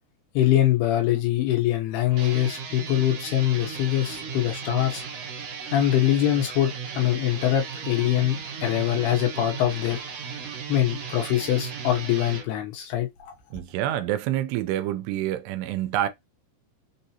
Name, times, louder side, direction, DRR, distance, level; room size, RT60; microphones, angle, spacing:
voice 1, 0.3-5.0 5.7-10.0 10.7-13.3, left 12 dB, 75° left, 2.8 m, -23 dB
sound 1, 2.1-12.5, right 6 dB, 65° right, 1.5 m, -36 dB
voice 2, 13.5-16.1, right 12 dB, 80° right, 2.7 m, -27 dB
6.5 x 2.7 x 2.8 m
omnidirectional pair, 4.9 m